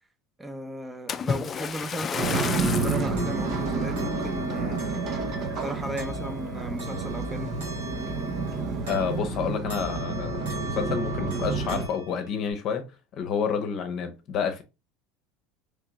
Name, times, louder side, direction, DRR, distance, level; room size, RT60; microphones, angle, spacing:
voice 1, 0.4-4.8 5.4-7.6, right 1 dB, 10° right, 0.8 m, -36 dB
Splash splatter, 1.1-3.1 3.8-4.0 4.6-4.7, left 6 dB, 35° left, 0.4 m, -31 dB
sound 1, 2.2-11.9, right 3 dB, 50° right, 0.9 m, -29 dB
sound 2, 2.7-9.4 9.7-12.5, equal, 85° right, 1.7 m, -41 dB
voice 2, 8.8-14.6, left 7 dB, 55° left, 0.8 m, -29 dB
3.2 x 2.9 x 3.5 m
hypercardioid pair, 85°, 0 cm